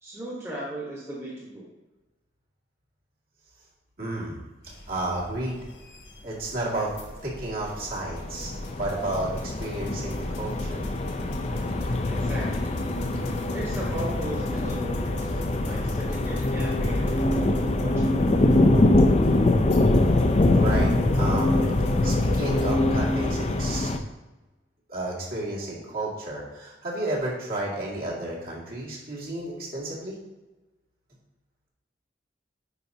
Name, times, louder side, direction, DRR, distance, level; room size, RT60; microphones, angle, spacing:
voice 1, 0.0-1.6 12.1-12.5 13.5-18.1, right 1 dB, 15° right, -4 dB, 1.1 m, -37 dB
voice 2, 4.0-4.4 4.9-5.6 6.2-6.9 7.2-8.5 8.8-10.8 20.5-21.6 22.0-23.9 24.9-30.1, right 1 dB, 55° right, -5 dB, 2.2 m, -32 dB
sound 1, 4.6-22.7, left 1 dB, 75° left, 1.3 m, -35 dB
sound 2, 8.1-24.0, left 2 dB, 40° left, 0.4 m, -24 dB
9.7 x 4.9 x 2.8 m, 1.1 s
head